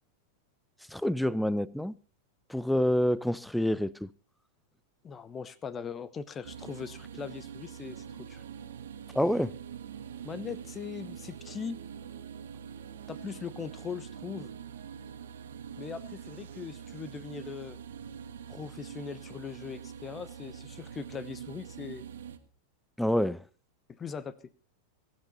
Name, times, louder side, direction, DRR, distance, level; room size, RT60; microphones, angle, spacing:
voice 1, 0.9-1.9 2.5-4.1 9.1-9.5 23.0-23.4, left 1 dB, ahead, 0.6 m, -27 dB
voice 2, 5.0-8.4 10.2-11.8 13.1-14.5 15.8-17.8 18.5-22.0 23.9-24.4, left 6 dB, 20° left, 1.1 m, -40 dB
sound 1, 6.4-22.4, right 8 dB, 60° right, 1.5 m, -44 dB
22.5 x 9.6 x 4.3 m
figure-of-eight pair, 90°, 0 cm